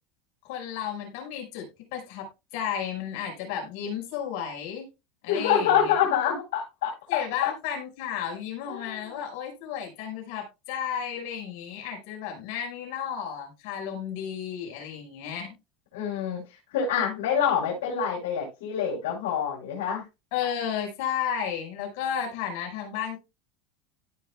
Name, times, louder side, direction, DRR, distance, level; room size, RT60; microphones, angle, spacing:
voice 1, 0.4-4.9 5.2-5.9 7.1-15.5 20.3-23.2, left 8 dB, 70° left, 5.3 m, -33 dB
voice 2, 5.3-7.5 8.7-9.2 15.9-16.4 16.7-20.0, left 8 dB, 85° left, 6.8 m, -26 dB
17.0 x 5.9 x 2.3 m
supercardioid pair, 135°, 0 cm